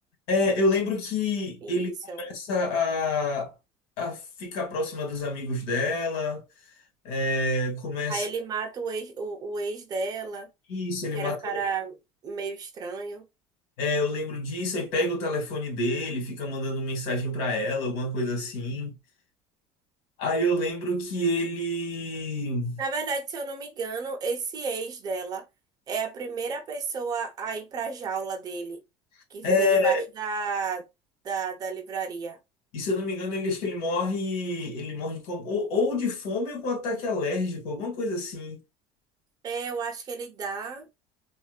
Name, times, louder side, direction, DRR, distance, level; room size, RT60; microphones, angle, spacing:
voice 1, 0.3-1.9 2.2-3.5 4.0-6.4 7.0-8.2 10.7-11.6 13.8-18.9 20.2-22.8 29.4-30.0 32.7-38.6, left 2 dB, 85° left, 2.0 m, -28 dB
voice 2, 1.6-2.2 8.1-10.5 11.1-12.0 12.2-13.2 22.8-25.4 25.9-28.8 29.3-30.8 31.2-32.4 39.4-40.9, right 5 dB, 35° right, 0.9 m, -32 dB
3.7 x 2.9 x 2.4 m
cardioid pair, 155°, 12 cm